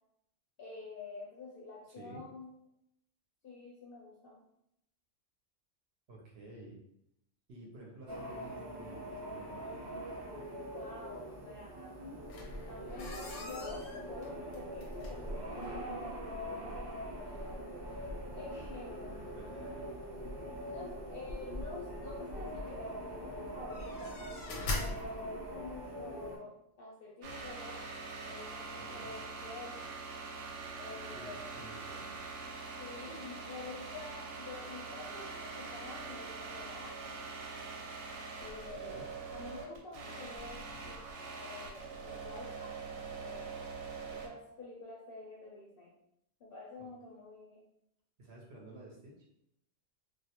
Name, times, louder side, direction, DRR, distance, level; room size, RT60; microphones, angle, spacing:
voice 1, 0.6-2.5 3.4-4.4 10.7-12.0 12.6-17.6 18.3-19.2 20.6-24.2 24.7-27.8 28.2-29.8 30.8-31.5 32.8-37.2 38.4-39.0 39.3-41.0 41.4-43.6 44.1-45.9 46.4-47.6, left 3 dB, 60° left, -4 dB, 0.6 m, -48 dB
voice 2, 1.9-2.2 6.1-6.8 7.5-10.1 18.9-20.0 28.8-29.1 31.1-32.2 38.8-39.1 46.8-46.9 48.2-49.3, right 2 dB, 65° right, -2 dB, 0.7 m, -52 dB
sound 1, 8.1-26.4, equal, 40° right, 0.3 m, -43 dB
sound 2, 12.2-25.8, left 2 dB, 85° left, 1.0 m, -44 dB
sound 3, 27.2-44.3, right 4 dB, 90° right, 1.0 m, -44 dB
2.3 x 2.1 x 2.8 m, 0.78 s
omnidirectional pair, 1.3 m